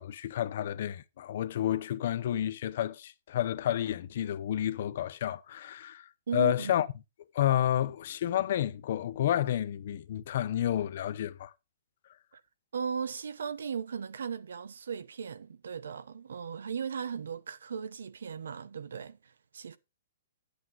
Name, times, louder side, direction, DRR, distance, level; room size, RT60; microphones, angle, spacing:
voice 1, 0.0-6.9 7.3-11.5, left 11 dB, 45° left, 0.7 m, -30 dB
voice 2, 6.3-6.8 12.3-12.4 12.7-19.8, right 6 dB, 85° right, 0.8 m, -37 dB
9.4 x 8.2 x 3.8 m
hypercardioid pair, 170°, 0 cm